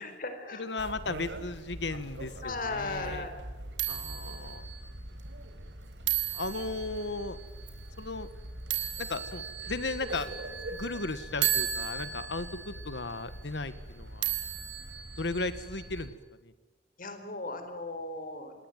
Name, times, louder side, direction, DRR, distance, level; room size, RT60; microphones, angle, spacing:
voice 1, 0.0-0.7 2.4-3.3 17.0-18.5, left 2 dB, 50° left, 8 dB, 4.3 m, -37 dB
voice 2, 0.5-3.3 3.9-4.7 6.3-7.4 8.0-8.3 9.0-10.4 10.7-14.3 15.2-16.1 16.4-16.5, left 3 dB, 70° left, 13 dB, 1.5 m, -36 dB
sound 1, 0.8-16.1, right 8 dB, 85° right, 4.0 m, -37 dB
27.5 x 21.5 x 9.2 m, 1.2 s
head